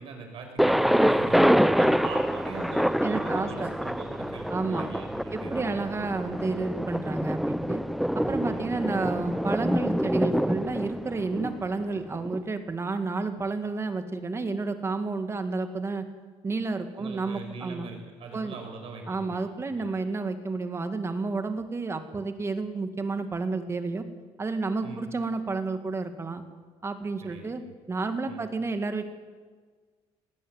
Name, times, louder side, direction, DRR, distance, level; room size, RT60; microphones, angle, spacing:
voice 1, 0.0-5.9 8.5-8.7 16.9-19.4 19.7-19.9 24.8-25.1 27.2-27.7 28.3-28.4, right 4 dB, 60° right, 3 dB, 6.4 m, -41 dB
Thunder, 0.6-12.4, equal, ahead, 0.5 m, -26 dB
voice 2, 3.0-3.7 4.5-4.9 5.3-7.8 8.1-16.1 16.4-17.9 18.3-18.6 19.1-24.0 24.4-26.4 26.8-27.6 27.9-29.0, right 3 dB, 25° right, 8 dB, 2.1 m, -31 dB
19.5 x 16.5 x 9.5 m, 1.5 s
cardioid pair, 110°, 11 cm